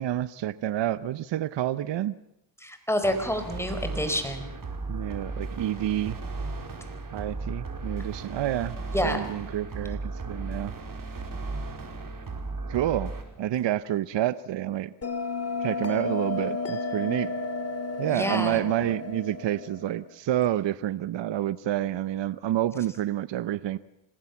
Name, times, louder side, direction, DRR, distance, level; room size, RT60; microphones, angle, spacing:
voice 1, 0.0-2.1 4.9-6.2 7.1-8.8 9.0-10.7 12.7-14.9 15.6-17.3 18.0-23.8, right 12 dB, 65° right, 16 dB, 0.8 m, -28 dB
voice 2, 2.6-4.5 8.9-9.2 18.1-18.6, equal, 5° left, 7 dB, 4.6 m, -28 dB
sound 1, 3.0-13.2, right 3 dB, 45° right, 4.8 m, -35 dB
Bell, 15.0-20.1, left 3 dB, 35° left, 2.2 m, -32 dB
26.5 x 19.5 x 7.2 m, 0.84 s
cardioid pair, 80°, 46 cm